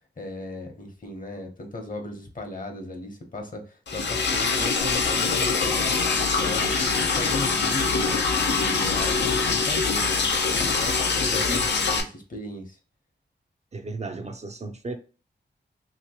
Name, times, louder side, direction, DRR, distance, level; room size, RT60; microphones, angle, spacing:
voice 1, 0.2-8.2 8.5-12.8, left 1 dB, 50° left, 0.9 m, -36 dB
Liquid, 3.9-12.0, left 4 dB, 85° left, 0.6 m, -24 dB
voice 2, 11.3-11.7 13.7-15.0, right 3 dB, 40° right, 0.4 m, -34 dB
3.0 x 2.9 x 2.8 m
wide cardioid pair, 110°, 18 cm